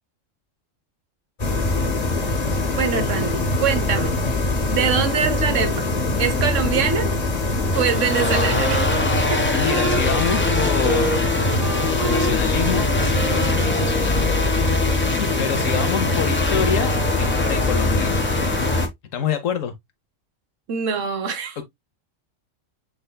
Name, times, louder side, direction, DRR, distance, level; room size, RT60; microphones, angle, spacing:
sound 1, 1.4-18.9, left 2 dB, 35° left, 0.9 m, -22 dB
voice 1, 2.7-4.3 4.7-5.9 6.2-7.2 7.7-8.9 9.3-9.4 20.7-21.6, right 7 dB, 75° right, 1.2 m, -24 dB
sound 2, 7.7-18.9, left 2 dB, 15° left, 0.4 m, -26 dB
Wind instrument woodwind instrument, 8.1-14.8, right 3 dB, 30° right, 1.1 m, -30 dB
voice 2, 9.5-11.6 12.0-14.4 15.0-16.9 17.2-18.3 19.1-19.7, left 8 dB, 90° left, 1.1 m, -27 dB
6.4 x 3.3 x 2.2 m
omnidirectional pair, 1.3 m